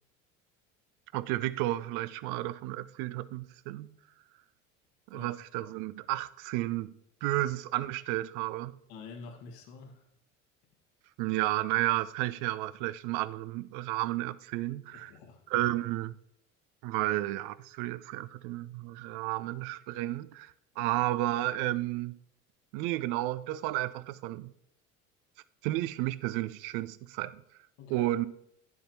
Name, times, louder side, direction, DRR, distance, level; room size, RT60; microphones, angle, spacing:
voice 1, 1.1-3.9 5.1-7.0 7.2-8.8 11.2-15.1 15.5-16.2 16.8-22.2 22.7-24.5 25.6-27.4 27.9-28.3, right 16 dB, 55° right, 0.5 m, -32 dB
voice 2, 8.9-10.0 14.9-15.4 27.8-28.1, left 4 dB, 65° left, 1.7 m, -47 dB
9.9 x 7.1 x 2.8 m
hypercardioid pair, 65°, 39 cm